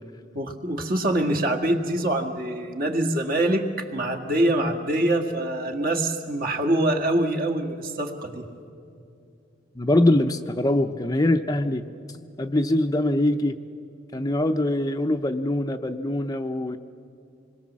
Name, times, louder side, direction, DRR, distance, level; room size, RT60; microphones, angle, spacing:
voice 1, 0.3-8.5, right 1 dB, 50° right, 4 dB, 1.9 m, -24 dB
voice 2, 9.8-11.8 12.4-13.6 14.1-16.8, left 1 dB, 20° left, 6 dB, 0.6 m, -23 dB
26.5 x 21.0 x 7.4 m, 2.6 s
head